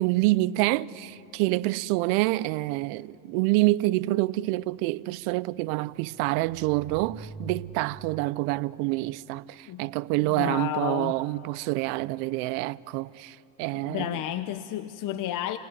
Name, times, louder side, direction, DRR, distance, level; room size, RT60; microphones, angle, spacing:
voice 1, 0.0-14.2, right 19 dB, 75° right, 0.7 m, -27 dB
sound 1, 1.1-8.4, right 4 dB, 10° right, 0.9 m, -46 dB
voice 2, 10.2-11.1 13.7-15.6, left 12 dB, 45° left, 0.9 m, -32 dB
29.5 x 18.5 x 9.8 m
supercardioid pair, 115°, 43 cm